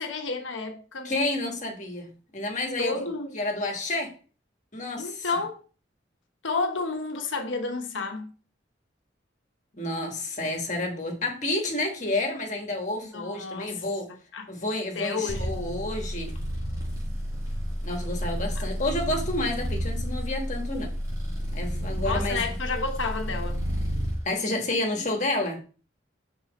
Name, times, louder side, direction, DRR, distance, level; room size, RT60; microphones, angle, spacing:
voice 1, 0.0-1.1 2.8-3.4 5.0-5.6 6.4-8.3 13.1-13.8 14.3-14.5 14.9-15.5 18.6-18.7 22.0-23.6, left 3 dB, 85° left, 1.0 m, -31 dB
voice 2, 1.0-3.0 3.3-4.1 4.7-5.3 9.8-14.1 14.5-16.3 17.8-20.9 21.5-22.4 24.2-25.6, left 2 dB, 40° left, 1.4 m, -30 dB
sound 1, 15.3-24.2, equal, 20° right, 2.1 m, -31 dB
5.7 x 4.1 x 4.0 m
head